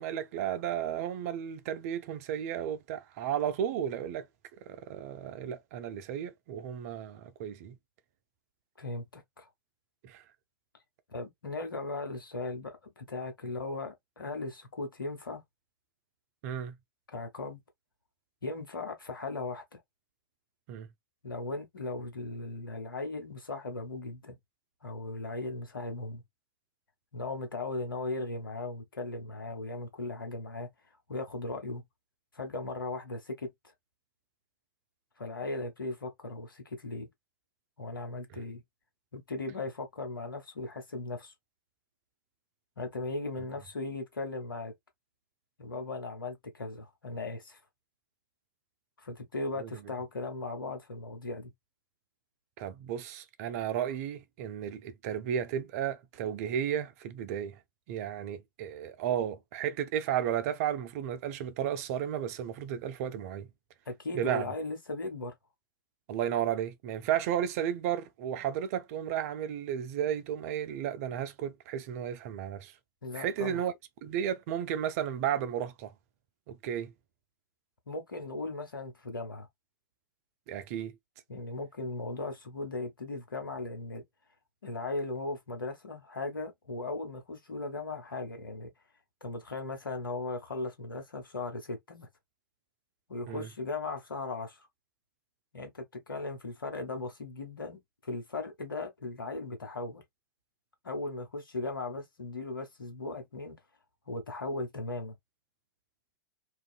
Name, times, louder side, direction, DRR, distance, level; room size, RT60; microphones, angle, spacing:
voice 1, 0.0-4.3 4.7-7.7 10.0-10.2 16.4-16.7 20.7-20.9 38.3-38.4 49.6-49.7 52.6-57.6 57.9-63.5 64.1-64.4 66.1-72.7 73.1-73.7 74.0-75.9 76.5-76.9 80.5-80.9 93.3-93.5, right 9 dB, 45° right, 0.4 m, -33 dB
voice 2, 8.8-9.5 11.1-15.4 17.1-17.6 18.4-19.8 21.2-24.4 24.8-26.2 27.1-30.7 31.1-31.8 32.3-33.5 35.2-37.1 37.8-38.6 39.1-41.3 42.8-44.7 45.6-47.6 49.0-51.5 63.9-65.3 73.0-73.6 77.9-79.5 81.3-84.0 84.6-88.7 89.2-92.1 93.1-94.7 95.5-100.0 100.8-103.6 104.1-105.1, left 2 dB, 80° left, 0.9 m, -37 dB
2.5 x 2.2 x 2.3 m
figure-of-eight pair, 100°, 11 cm